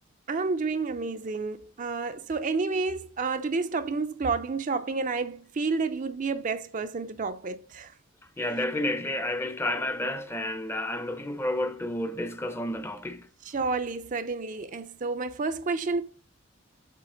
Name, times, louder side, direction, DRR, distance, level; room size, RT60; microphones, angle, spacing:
voice 1, 0.3-7.9 13.5-16.0, right 4 dB, 40° right, 0.5 m, -30 dB
voice 2, 8.4-13.3, left 1 dB, 10° left, 0.6 m, -30 dB
7.5 x 4.1 x 3.8 m
head